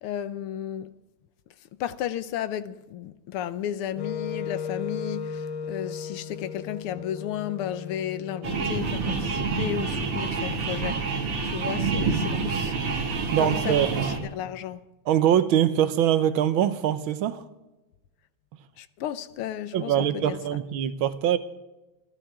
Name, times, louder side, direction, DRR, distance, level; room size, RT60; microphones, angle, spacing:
voice 1, 0.0-0.9 1.8-12.8 13.4-14.8 18.8-20.4, left 10 dB, 85° left, 1.7 m, -33 dB
Wind instrument woodwind instrument, 4.0-10.0, left 6 dB, 65° left, 1.6 m, -36 dB
sound 1, 8.4-14.2, right 4 dB, 90° right, 3.2 m, -27 dB
voice 2, 13.3-14.1 15.1-17.4 19.7-21.4, right 10 dB, 70° right, 1.5 m, -23 dB
26.5 x 13.5 x 3.7 m
omnidirectional pair, 2.4 m